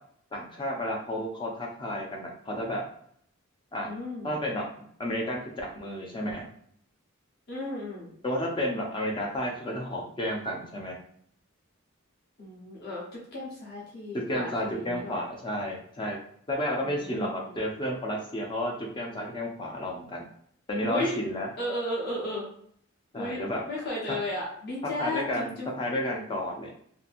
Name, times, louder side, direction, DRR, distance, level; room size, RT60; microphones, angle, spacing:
voice 1, 0.3-2.8 3.7-3.9 4.2-4.6 5.0-6.5 8.2-11.0 14.1-16.2 16.5-20.3 20.7-21.5 23.1-23.6 25.0-25.5 25.8-26.7, equal, 25° left, -1 dB, 0.4 m, -31 dB
voice 2, 3.8-4.3 7.5-8.1 12.4-15.2 16.8-17.6 20.9-21.2 21.6-22.5 23.1-25.7, left 1 dB, 50° left, -5 dB, 0.8 m, -34 dB
2.7 x 2.4 x 2.5 m, 0.65 s
head